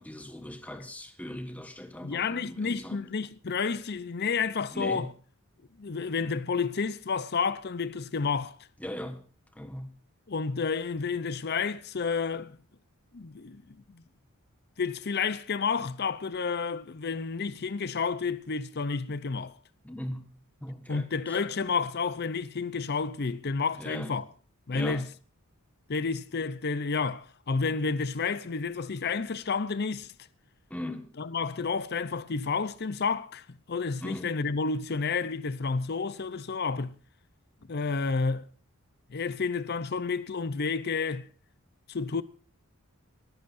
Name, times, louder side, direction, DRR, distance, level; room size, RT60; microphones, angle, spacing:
voice 1, 0.0-3.0 4.7-5.0 8.8-9.2 9.6-9.9 19.8-20.2 20.6-21.0 23.8-24.1 24.7-25.0 30.7-31.1 34.0-34.3, left 1 dB, 5° left, 1.4 m, -38 dB
voice 2, 2.0-5.1 5.8-8.6 10.3-12.6 13.1-14.0 14.8-19.6 20.9-24.3 24.7-25.1 25.9-30.1 31.2-36.9 37.7-38.5 39.1-41.3 41.9-42.2, left 5 dB, 45° left, 0.6 m, -30 dB
23.0 x 14.0 x 2.6 m
head